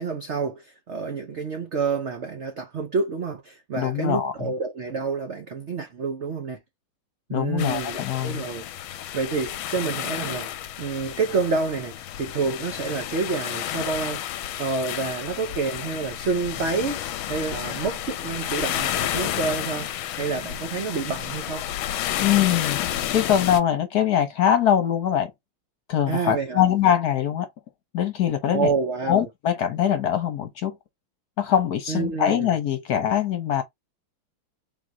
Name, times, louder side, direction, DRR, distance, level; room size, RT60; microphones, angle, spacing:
voice 1, 0.0-6.6 7.3-8.6 8.9-14.3 14.6-21.7 26.1-26.7 28.5-29.3 31.9-32.6, right 4 dB, 80° right, 0.6 m, -28 dB
voice 2, 3.7-4.5 7.3-8.4 22.2-22.8 23.1-25.3 25.9-27.5 27.9-28.7 29.1-30.8 31.4-33.6, left 10 dB, 60° left, 1.2 m, -23 dB
sound 1, 7.6-23.6, left 12 dB, 90° left, 1.4 m, -31 dB
3.7 x 3.0 x 3.8 m
omnidirectional pair, 2.2 m